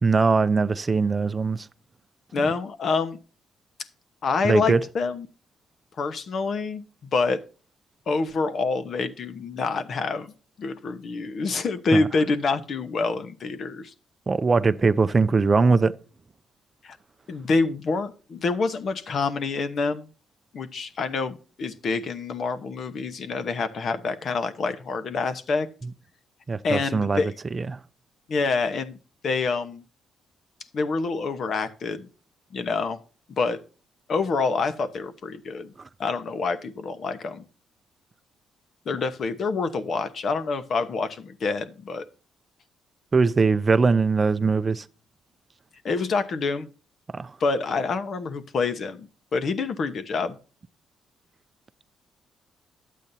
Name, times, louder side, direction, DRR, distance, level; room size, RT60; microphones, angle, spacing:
voice 1, 0.0-1.7 4.4-4.8 11.9-12.1 14.3-15.9 26.5-27.2 27.5-27.8 43.1-44.9 47.1-47.3, right 4 dB, 30° right, 0.5 m, -21 dB
voice 2, 2.3-3.2 4.2-5.3 6.0-7.4 8.1-10.3 10.6-13.9 16.8-17.0 17.3-20.1 20.5-25.7 26.6-27.3 28.3-29.0 29.2-29.8 30.7-32.1 32.5-33.0 33.4-33.6 34.1-35.7 36.0-37.4 38.9-42.0 45.8-46.7 47.4-50.4, left 4 dB, 55° left, 0.9 m, -27 dB
12.0 x 8.3 x 2.7 m
cardioid pair, 90°, 0 cm